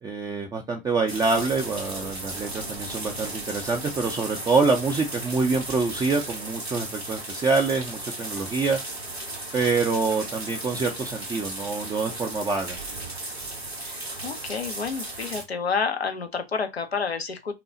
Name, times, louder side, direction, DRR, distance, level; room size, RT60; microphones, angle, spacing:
voice 1, 0.0-8.8 9.5-12.8, right 4 dB, 10° right, 0.6 m, -26 dB
sound 1, 1.1-15.4, right 2 dB, 90° right, 1.7 m, -35 dB
voice 2, 13.8-17.5, left 5 dB, 85° left, 0.9 m, -29 dB
5.7 x 2.3 x 3.8 m
figure-of-eight pair, 95°, 30 cm